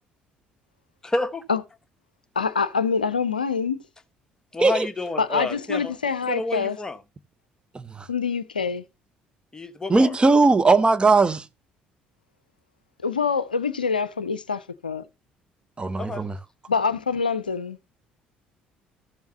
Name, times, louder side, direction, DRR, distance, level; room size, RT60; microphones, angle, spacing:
voice 1, 1.0-1.4 4.5-5.9 6.3-7.0 9.5-10.1 16.0-16.3, left 2 dB, 15° left, 1.2 m, -29 dB
voice 2, 2.4-3.8 5.2-6.8 8.1-8.8 13.0-15.0 16.7-17.8, left 5 dB, 85° left, 0.4 m, -25 dB
voice 3, 7.7-8.1 9.9-11.5 15.8-16.4, right 3 dB, 20° right, 0.8 m, -19 dB
14.0 x 7.1 x 2.7 m
figure-of-eight pair, 55°, 5 cm